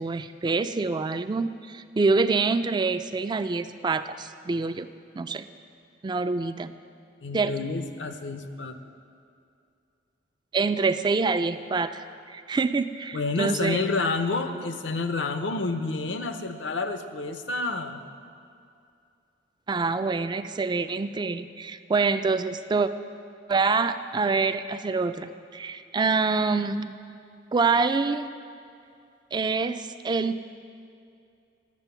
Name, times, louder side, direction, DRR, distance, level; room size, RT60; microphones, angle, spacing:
voice 1, 0.0-4.9 5.2-5.5 6.0-6.7 7.3-7.5 10.5-13.8 14.5-14.6 19.7-22.9 23.5-27.0 27.5-28.3 29.3-30.4, right 4 dB, 25° right, 11 dB, 0.3 m, -26 dB
voice 2, 7.2-8.8 13.1-18.0, left 3 dB, 75° left, 8 dB, 0.7 m, -29 dB
10.5 x 7.5 x 6.9 m, 2.5 s
head